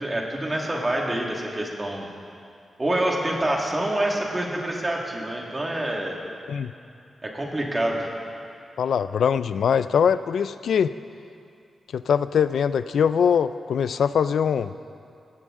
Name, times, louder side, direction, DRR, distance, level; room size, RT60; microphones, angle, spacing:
voice 1, 0.0-2.1 2.8-6.1 7.2-8.1, right 1 dB, 20° right, -1 dB, 1.9 m, -26 dB
voice 2, 8.8-10.9 11.9-14.7, left 7 dB, 80° left, 13 dB, 0.3 m, -22 dB
19.0 x 15.0 x 3.7 m, 2.5 s
wide cardioid pair, 160°, 0 cm